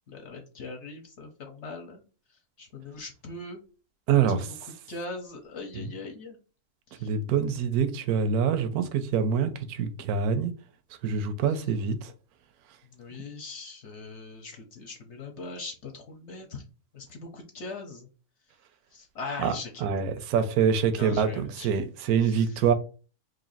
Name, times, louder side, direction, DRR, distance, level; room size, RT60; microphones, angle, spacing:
voice 1, 0.0-2.0 2.3-3.6 4.1-4.5 4.9-6.4 6.9-7.1 11.5-11.7 12.8-16.6 16.9-18.1 18.9-19.9 20.9-21.7 22.2-22.6, left 3 dB, 55° left, 1.0 m, -41 dB
voice 2, 4.1-4.5 5.8-5.9 7.0-10.5 11.0-12.1 19.4-19.6 19.8-22.7, right 7 dB, 75° right, 1.1 m, -25 dB
3.0 x 2.6 x 3.9 m
omnidirectional pair, 1.6 m